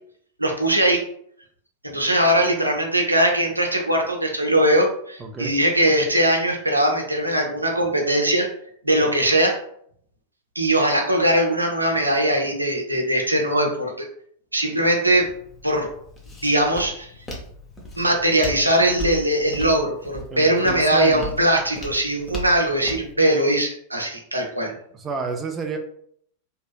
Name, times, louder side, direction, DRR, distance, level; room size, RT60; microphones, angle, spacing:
voice 1, 0.4-1.0 1.8-8.5 8.8-9.6 10.6-14.1 14.5-15.3 15.6-15.9 16.4-17.1 18.0-24.7, right 1 dB, 85° right, 1 dB, 0.5 m, -20 dB
voice 2, 5.2-5.6 20.3-21.4 24.9-25.8, right 5 dB, 20° right, 4 dB, 0.3 m, -30 dB
Walk footsteps, 15.1-23.1, equal, 15° left, 0.7 m, -37 dB
2.7 x 2.4 x 2.2 m, 0.66 s
figure-of-eight pair, 90°, 0 cm